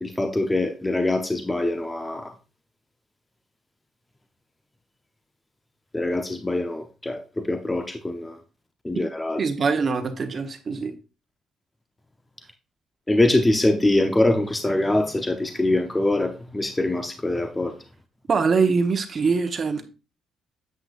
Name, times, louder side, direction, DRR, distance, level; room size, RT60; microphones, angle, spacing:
voice 1, 0.0-2.3 5.9-8.4 8.8-9.4 13.1-17.8, left 2 dB, 15° left, 0.8 m, -23 dB
voice 2, 9.4-10.9 18.3-19.9, right 5 dB, 45° right, 1.1 m, -23 dB
9.2 x 7.8 x 2.5 m
cardioid pair, 90°, 0 cm